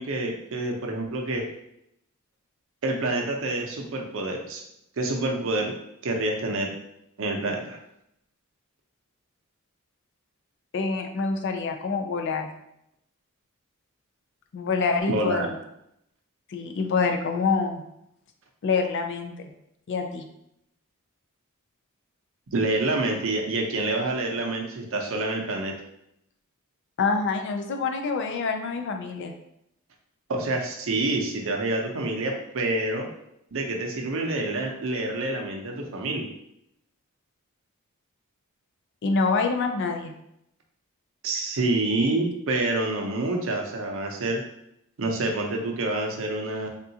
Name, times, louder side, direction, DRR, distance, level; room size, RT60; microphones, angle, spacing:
voice 1, 0.0-1.5 2.8-4.6 5.0-5.7 6.0-6.7 7.2-7.8 15.1-15.5 22.5-25.7 30.3-33.1 33.5-36.3 41.2-44.4 45.0-46.7, right 2 dB, 65° right, 1 dB, 0.6 m, -27 dB
voice 2, 10.7-12.5 14.5-15.5 16.5-17.8 18.6-19.3 19.9-20.3 27.0-29.3 39.0-40.1, left 4 dB, 55° left, 5 dB, 0.4 m, -26 dB
3.6 x 2.3 x 2.7 m, 0.78 s
head